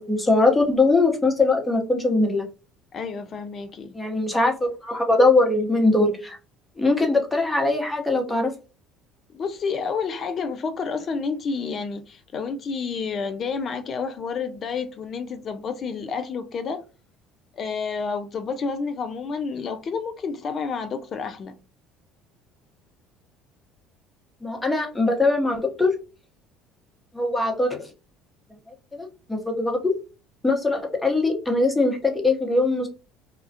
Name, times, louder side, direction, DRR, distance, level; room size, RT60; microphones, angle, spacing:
voice 1, 0.0-2.4 3.9-6.4 6.8-8.5 24.4-25.9 27.1-27.9 28.9-29.9 30.4-32.9, left 2 dB, 15° left, 0.9 m, -21 dB
voice 2, 2.9-4.0 9.3-16.8 17.5-21.6, left 5 dB, 45° left, 0.4 m, -30 dB
2.3 x 2.1 x 2.7 m
hypercardioid pair, 65°, 0 cm